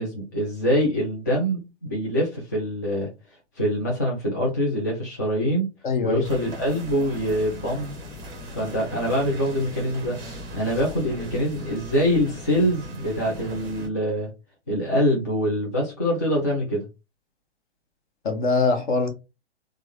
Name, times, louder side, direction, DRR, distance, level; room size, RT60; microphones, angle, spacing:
voice 1, 0.0-3.1 3.6-5.7 6.0-7.9 8.6-14.3 14.7-16.9, equal, 15° left, 0.3 m, -24 dB
voice 2, 5.8-6.3 18.2-19.1, left 4 dB, 45° left, 1.0 m, -22 dB
sound 1, 6.2-13.9, equal, 10° right, 0.7 m, -38 dB
3.5 x 2.1 x 3.2 m
figure-of-eight pair, 125°, 34 cm